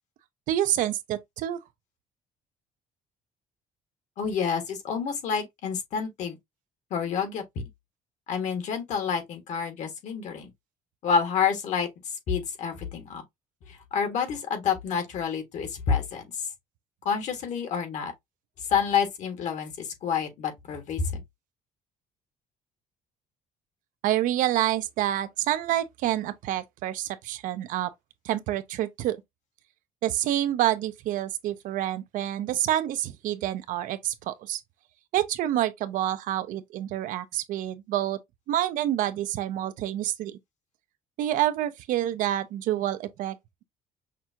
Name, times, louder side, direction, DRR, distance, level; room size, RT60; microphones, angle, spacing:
voice 1, 0.5-1.6 24.0-27.9 28.2-29.2 30.0-34.6 35.1-38.2 38.5-40.4 41.2-43.4, right 13 dB, 70° right, 0.6 m, -28 dB
voice 2, 4.2-6.4 6.9-7.4 8.3-10.5 11.0-11.9 12.3-13.2 13.9-16.2 17.0-18.1 18.7-21.2, left 6 dB, 60° left, 1.5 m, -28 dB
5.9 x 2.4 x 2.8 m
cardioid pair, 140°, 14 cm